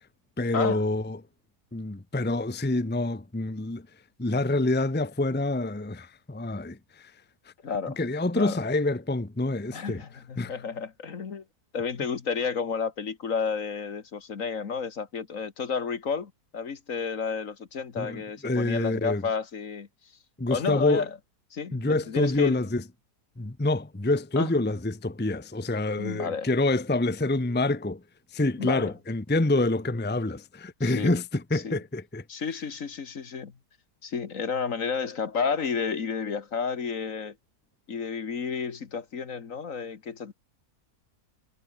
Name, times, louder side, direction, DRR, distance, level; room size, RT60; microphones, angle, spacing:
voice 1, 0.4-1.2 1.7-3.9 4.2-7.1 8.0-10.0 10.4-10.6 18.0-19.2 20.4-21.1 21.7-22.8 23.4-28.0 28.3-32.2, left 2 dB, 10° left, 0.9 m, -27 dB
voice 2, 7.6-8.0 8.3-8.6 9.7-11.4 11.7-19.9 20.5-21.1 21.5-22.6 24.4-24.5 26.0-26.5 28.6-28.9 30.8-31.1 31.5-31.8 32.3-33.5 34.0-37.4 37.9-40.3, left 5 dB, 55° left, 1.9 m, -31 dB
omnidirectional pair, 1.7 m